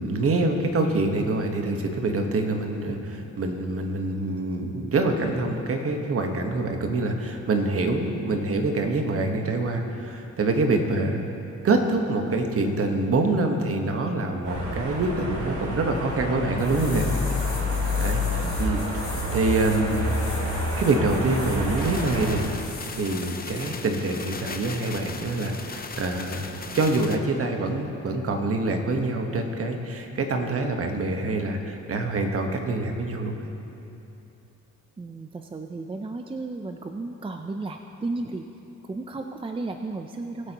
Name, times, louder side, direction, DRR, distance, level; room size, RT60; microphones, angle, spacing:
voice 1, 0.0-11.3 11.6-17.0 18.0-19.1 19.3-20.2 20.7-22.5 22.9-33.5, right 2 dB, 50° right, 3 dB, 1.4 m, -25 dB
sound 1, 14.4-22.4, left 1 dB, 75° right, 2.7 m, -28 dB
sound 2, 16.6-23.7 24.1-24.3, left 4 dB, 45° left, 2.5 m, -41 dB
voice 2, 18.4-18.8 35.0-38.5 38.8-40.5, right 3 dB, 20° right, 5 dB, 0.5 m, -34 dB
sound 3, 21.8-27.2, left 4 dB, 30° left, 0.8 m, -38 dB
20.5 x 8.1 x 3.0 m, 2.9 s
cardioid pair, 90°, 30 cm